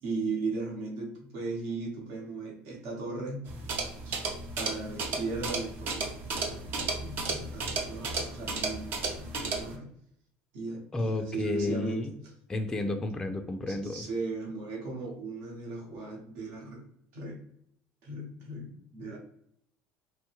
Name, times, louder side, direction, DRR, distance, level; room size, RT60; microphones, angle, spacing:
voice 1, 0.0-3.4 4.0-4.2 4.6-9.9 10.5-12.3 13.7-16.8 17.1-17.4 18.0-19.2, right 3 dB, 75° right, -1 dB, 1.0 m, -37 dB
sound 1, 3.5-9.7, right 3 dB, 55° right, 0.6 m, -34 dB
voice 2, 10.9-12.1 12.5-14.0, left 2 dB, 15° left, 5 dB, 0.3 m, -31 dB
3.0 x 2.2 x 2.9 m, 0.70 s
supercardioid pair, 110°, 4 cm